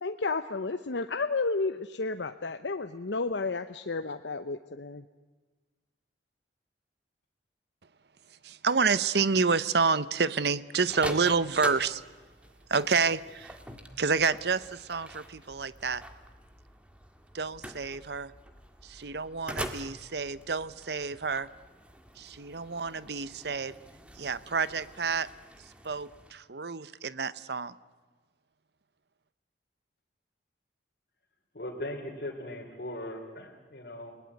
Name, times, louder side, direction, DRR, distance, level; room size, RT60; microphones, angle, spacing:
voice 1, 0.0-5.0, left 3 dB, 80° left, 8 dB, 0.8 m, -32 dB
voice 2, 8.4-12.0 12.7-13.6 14.0-16.0 17.3-18.3 18.8-21.5 22.2-23.7 24.2-25.3 25.8-27.8, right 5 dB, 65° right, 16 dB, 0.8 m, -29 dB
sound 1, 10.8-26.3, right 1 dB, 5° right, 1.7 m, -45 dB
voice 3, 31.5-34.1, left 1 dB, 55° left, -3 dB, 3.4 m, -39 dB
29.5 x 19.0 x 9.6 m, 1.3 s
head